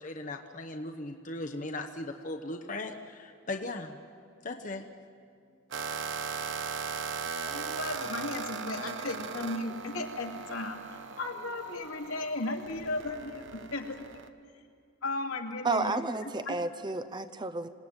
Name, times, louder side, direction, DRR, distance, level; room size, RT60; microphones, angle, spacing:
voice 1, 0.0-4.0 4.4-4.8, left 2 dB, 40° left, 4 dB, 1.0 m, -38 dB
sound 1, 5.7-14.3, right 5 dB, 60° right, 1.0 m, -38 dB
voice 2, 7.5-14.1 15.0-16.6, left 2 dB, 75° left, 2 dB, 2.6 m, -36 dB
voice 3, 15.6-17.7, right 3 dB, 20° right, 11 dB, 0.7 m, -31 dB
27.0 x 18.5 x 8.9 m, 2.3 s
head